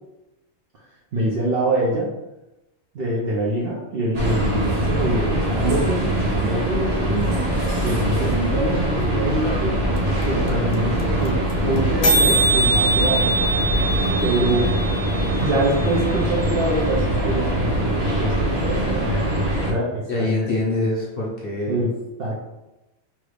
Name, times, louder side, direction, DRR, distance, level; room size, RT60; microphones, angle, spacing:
voice 1, 1.1-2.1 2.9-7.4 7.8-10.0 10.2-13.4 14.2-14.8 15.4-19.1 19.6-20.1 20.7-20.9 21.6-21.9 22.2-22.4, right 1 dB, 60° right, -5 dB, 0.7 m, -25 dB
sound 1, 4.1-19.7, right 1 dB, 85° right, 1.3 m, -23 dB
sound 2, 10.0-10.1 10.2-10.3 10.5-10.7 11.0-11.1 11.3-11.5 11.8-11.9 12.0-16.0, right 2 dB, 80° left, 0.4 m, -23 dB
voice 2, 20.1-21.9, left 2 dB, 50° left, -4 dB, 0.8 m, -24 dB
3.0 x 2.4 x 3.2 m, 0.96 s
omnidirectional pair, 1.5 m